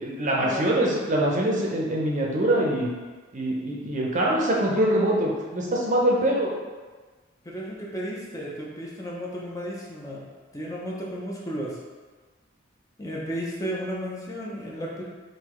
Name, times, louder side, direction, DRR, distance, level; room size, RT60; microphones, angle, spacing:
voice 1, 0.0-2.9 3.3-6.5, right 1 dB, 40° right, -3 dB, 0.6 m, -24 dB
voice 2, 7.4-10.2 10.5-11.8 13.0-15.0, equal, 15° left, -4 dB, 0.5 m, -33 dB
3.8 x 2.7 x 3.0 m, 1.4 s
head